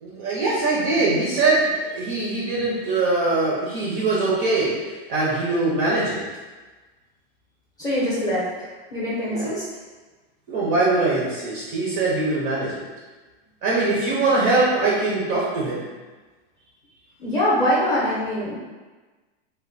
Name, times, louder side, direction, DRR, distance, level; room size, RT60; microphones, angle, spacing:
voice 1, 0.0-6.2 9.3-9.5 10.5-12.8 13.6-15.8, right 3 dB, 25° right, -6 dB, 0.4 m, -22 dB
voice 2, 7.8-9.6 17.2-18.6, equal, 10° left, -8 dB, 0.6 m, -23 dB
3.1 x 2.1 x 3.8 m, 1.3 s
supercardioid pair, 170°, 30 cm